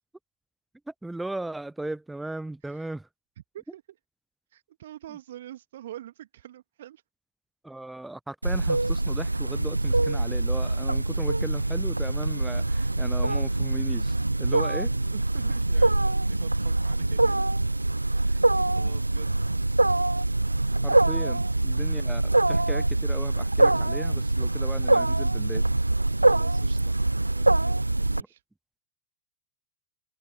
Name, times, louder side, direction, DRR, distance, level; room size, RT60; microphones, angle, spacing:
voice 1, 0.9-3.1 7.6-14.9 20.8-22.2 22.5-25.7 28.1-28.3, right 2 dB, 5° right, 0.8 m, -37 dB
voice 2, 4.5-7.0 14.8-17.4 18.1-18.4 18.7-19.3 21.1-21.4 26.2-27.0 27.3-28.4, right 12 dB, 60° right, 1.8 m, -45 dB
Wild animals, 8.4-28.2, right 2 dB, 85° right, 0.6 m, -24 dB
open air
figure-of-eight pair, 90°, 0 cm